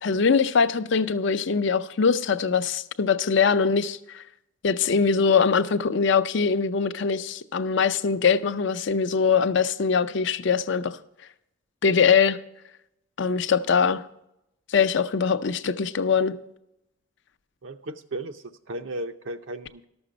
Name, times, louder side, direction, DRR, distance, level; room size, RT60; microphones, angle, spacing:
voice 1, 0.0-4.2 4.6-11.0 11.8-12.4 13.2-14.0 14.7-16.3, left 6 dB, 60° left, 12 dB, 0.5 m, -22 dB
voice 2, 17.6-19.9, right 1 dB, 65° right, 6 dB, 0.6 m, -35 dB
12.5 x 7.0 x 5.1 m, 0.84 s
head